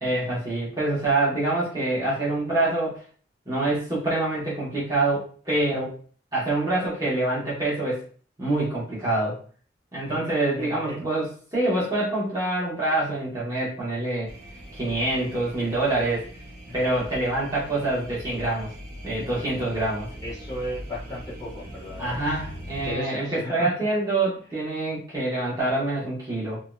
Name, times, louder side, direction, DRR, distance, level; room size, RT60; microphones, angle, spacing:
voice 1, 0.0-3.0 3.5-5.9 6.3-8.0 8.4-9.4 9.9-14.3 14.7-16.2 16.7-18.7 19.0-20.1 22.0-26.6, right 2 dB, 20° right, -8 dB, 0.9 m, -26 dB
voice 2, 10.0-11.1 16.7-16.8 20.2-22.4 22.8-23.7, left 1 dB, 20° left, -7 dB, 1.4 m, -35 dB
sound 1, 14.3-22.9, equal, 50° right, 0.7 m, -41 dB
3.0 x 2.6 x 2.3 m, 0.43 s
head